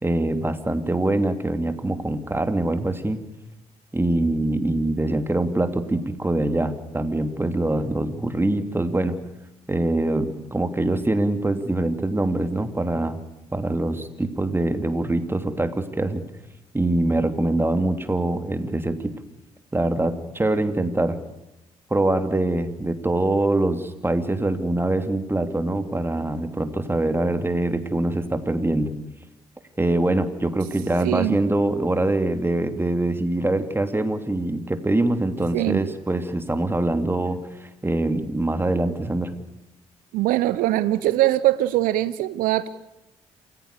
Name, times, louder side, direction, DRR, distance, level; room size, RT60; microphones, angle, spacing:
voice 1, 0.0-3.2 3.9-9.2 9.7-13.2 13.5-16.2 16.7-19.1 19.7-21.2 21.9-28.9 29.8-39.3, right 2 dB, 15° right, 9 dB, 3.0 m, -24 dB
voice 2, 31.0-31.4 35.5-35.8 40.1-42.7, right 15 dB, 70° right, 16 dB, 0.8 m, -22 dB
28.5 x 16.5 x 6.9 m, 0.91 s
hypercardioid pair, 45°, 15 cm